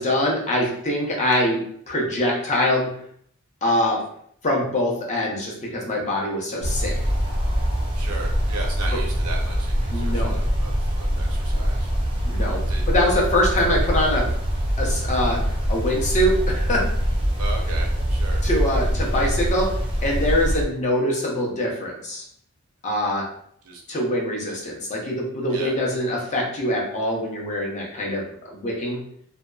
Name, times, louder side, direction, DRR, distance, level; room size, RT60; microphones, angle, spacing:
voice 1, 0.0-1.6 1.9-2.9 3.6-4.0 4.4-7.0 9.9-10.3 12.2-12.6 12.9-14.3 14.8-15.4 15.7-16.9 18.4-19.7 20.0-22.2 22.8-23.3 23.9-29.0, left 1 dB, 35° left, -2 dB, 0.6 m, -23 dB
sound 1, 6.6-20.6, equal, 25° right, 0.4 m, -23 dB
voice 2, 8.0-11.9 12.7-12.8 17.4-18.4 23.6-23.8 25.5-25.7, right 3 dB, 75° right, 1 dB, 0.6 m, -36 dB
2.7 x 2.2 x 2.3 m, 0.65 s
head